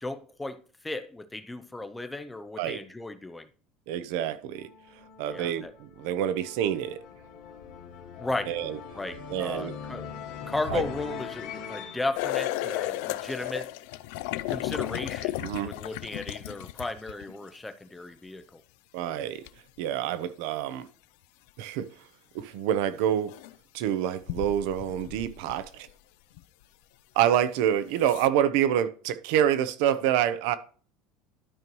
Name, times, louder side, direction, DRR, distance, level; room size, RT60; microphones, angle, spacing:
voice 1, 0.0-3.5 5.3-5.7 8.2-8.5 8.9-10.1 10.4-13.7 14.5-18.6, left 2 dB, 5° left, 0.6 m, -35 dB
voice 2, 3.9-4.7 5.2-7.0 8.5-8.8 9.3-9.8 10.7-10.8 15.4-15.7 18.9-19.4 19.8-20.9 21.6-22.1 22.3-23.3 23.7-25.9 27.1-30.6, right 10 dB, 65° right, 0.8 m, -27 dB
sound 1, 4.5-13.6, left 6 dB, 50° left, 1.3 m, -42 dB
sound 2, 12.1-17.4 19.5-19.6 22.4-22.5 23.3-23.5 24.2-25.9 26.4-26.5 27.3-27.4 28.0-28.3, left 16 dB, 70° left, 0.4 m, -34 dB
12.0 x 5.4 x 3.1 m
cardioid pair, 170°, 0 cm